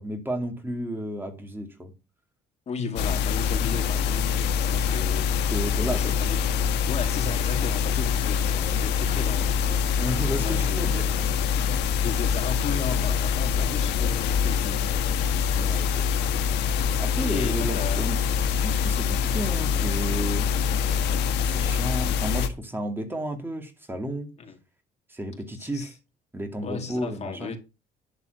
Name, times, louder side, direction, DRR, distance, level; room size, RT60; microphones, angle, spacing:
voice 1, 0.0-1.9 5.5-6.1 10.0-11.0 15.6-16.1 17.0-18.2 18.6-20.5 21.0-24.3 25.1-25.9 26.3-27.5, right 1 dB, 10° right, 2.3 m, -32 dB
voice 2, 2.7-5.4 5.8-6.5 6.8-11.0 12.0-14.8 17.2-18.1 18.4-18.5 20.8-21.2 24.4-24.6 25.6-25.9 26.6-27.6, left 5 dB, 40° left, 2.3 m, -35 dB
sound 1, 3.0-22.5, left 7 dB, 85° left, 1.4 m, -25 dB
11.0 x 4.1 x 7.8 m
cardioid pair, 110°, 17 cm